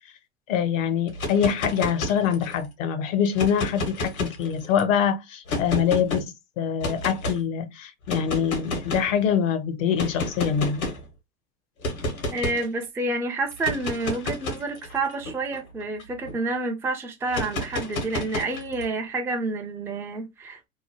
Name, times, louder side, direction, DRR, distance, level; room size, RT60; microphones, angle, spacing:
voice 1, 0.5-10.8, left 8 dB, 65° left, 0.8 m, -24 dB
sound 1, 1.1-2.6 3.3-4.8 5.5-6.2 6.8-7.4 8.1-9.2 10.0-11.1 11.8-12.7 13.5-16.3 17.3-18.9, left 2 dB, 85° left, 1.3 m, -31 dB
voice 2, 12.3-20.7, right 2 dB, 5° right, 0.4 m, -29 dB
2.9 x 2.1 x 2.8 m
hypercardioid pair, 95°, 41 cm